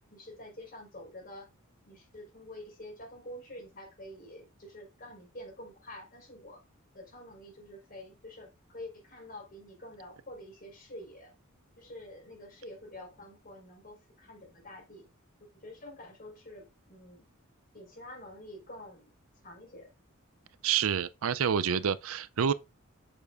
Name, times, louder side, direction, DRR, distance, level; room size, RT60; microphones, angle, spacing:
voice 1, 0.1-1.5 1.8-6.6 6.9-11.3 11.8-15.1 15.4-17.3 17.7-19.1 19.4-19.9, left 1 dB, 40° left, 4.6 m, -47 dB
voice 2, 20.6-22.5, right 7 dB, 70° right, 0.5 m, -28 dB
8.4 x 6.9 x 2.5 m
head